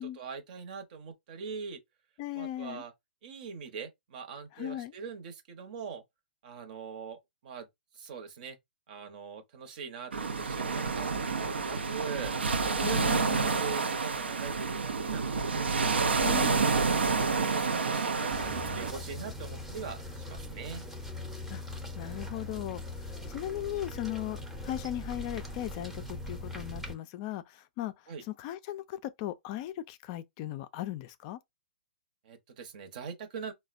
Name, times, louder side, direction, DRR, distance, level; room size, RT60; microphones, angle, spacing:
voice 1, 0.0-1.8 2.3-2.9 3.2-6.0 6.4-7.7 7.9-8.6 8.9-12.3 12.6-16.4 17.5-20.8 28.1-28.2 32.2-33.5, right 6 dB, 50° right, 0.9 m, -42 dB
voice 2, 2.2-2.8 4.6-4.9 12.8-13.6 16.2-16.6 21.5-21.6 22.0-27.9 28.3-31.4, left 13 dB, 35° left, 0.3 m, -38 dB
sound 1, 10.1-18.9, right 4 dB, 85° right, 0.5 m, -29 dB
sound 2, 18.3-26.9, left 2 dB, 5° right, 0.6 m, -41 dB
3.9 x 2.1 x 2.5 m
hypercardioid pair, 135°, 6 cm